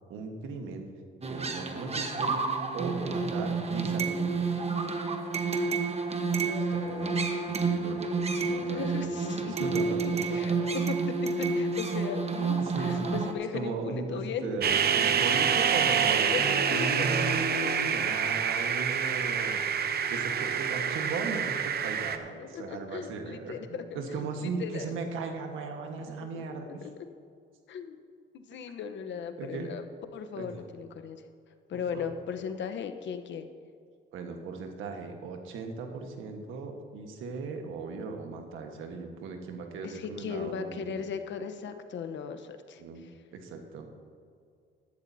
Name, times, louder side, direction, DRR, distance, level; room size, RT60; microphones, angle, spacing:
voice 1, 0.1-0.9 1.3-2.3 2.7-4.6 6.4-7.2 7.5-10.6 12.6-13.1 13.5-26.8 29.4-29.7 30.3-30.5 31.7-32.1 34.1-41.0 42.8-43.9, right 4 dB, 90° right, 4 dB, 1.5 m, -38 dB
sound 1, 1.2-13.3, right 4 dB, 30° right, 1.2 m, -30 dB
voice 2, 6.5-7.3 8.5-9.6 10.3-10.5 10.9-14.4 16.3-17.2 22.4-24.0 24.4-24.9 26.3-27.1 27.7-28.0 28.3-29.8 30.1-31.2 31.7-33.5 39.8-43.1, left 7 dB, 65° left, 8 dB, 1.0 m, -37 dB
sound 2, 14.6-22.2, right 7 dB, 55° right, 0.8 m, -27 dB
15.5 x 12.0 x 2.8 m, 2.3 s
cardioid pair, 90°, 20 cm